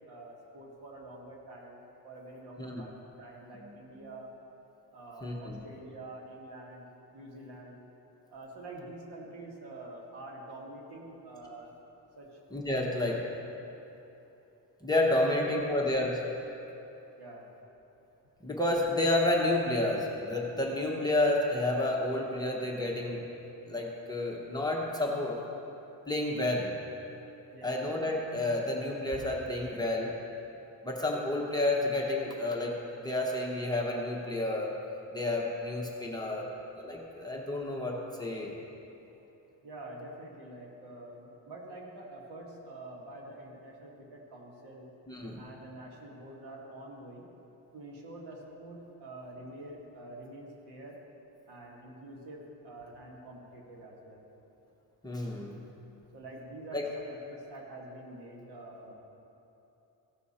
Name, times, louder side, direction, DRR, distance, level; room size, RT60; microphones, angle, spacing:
voice 1, 0.1-2.9 3.2-4.3 4.9-6.8 7.1-7.8 8.3-11.7 12.2-12.4 12.7-13.1 15.2-15.7 17.2-17.5 27.5-27.7 39.6-44.9 45.4-47.3 47.7-51.0 51.5-54.2 56.1-58.9, right 1 dB, 70° right, -2 dB, 2.0 m, -46 dB
voice 2, 5.2-5.6 12.5-13.2 14.8-16.3 18.4-23.2 23.7-25.4 26.1-26.7 27.6-30.1 30.8-34.7 35.1-36.5 36.8-38.6 45.1-45.4 55.0-55.6 56.7-56.8, left 1 dB, 10° left, -2 dB, 1.0 m, -30 dB
16.0 x 6.3 x 4.2 m, 3.0 s
cardioid pair, 140°, 41 cm